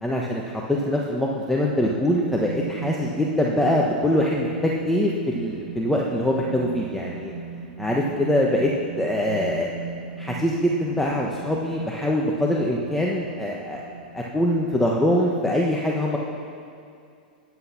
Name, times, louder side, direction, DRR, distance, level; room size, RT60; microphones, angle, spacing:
voice 1, 0.0-7.3 7.8-8.7 9.0-9.7 10.2-13.8 14.1-16.2, left 1 dB, 5° left, -2 dB, 1.3 m, -23 dB
sound 1, 1.7-15.1, right 5 dB, 70° right, 1.9 m, -37 dB
20.0 x 8.3 x 5.9 m, 2.4 s
hypercardioid pair, 115°, 5 cm